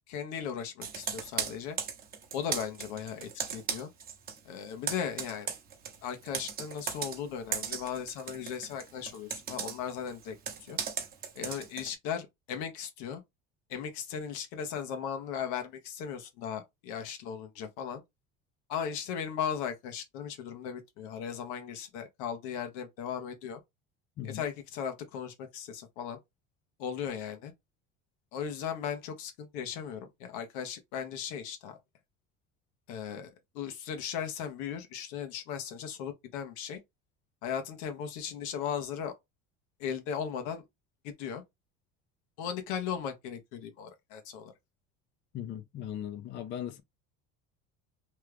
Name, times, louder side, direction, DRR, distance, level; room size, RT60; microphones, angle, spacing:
voice 1, 0.1-1.8 2.3-3.9 4.4-5.5 6.0-10.4 10.6-10.8 11.3-13.2 13.7-18.0 18.7-23.6 24.2-26.2 26.8-27.5 28.3-31.8 32.9-36.8 37.4-39.2 39.8-40.6 41.0-41.4 42.4-44.5, left 8 dB, 80° left, 1.0 m, -37 dB
Computer keyboard, 0.8-4.4 4.7-11.9, right 7 dB, 30° right, 0.8 m, -37 dB
voice 2, 45.3-46.8, left 10 dB, 40° left, 0.5 m, -38 dB
3.0 x 2.4 x 3.3 m
cardioid pair, 150°, 30 cm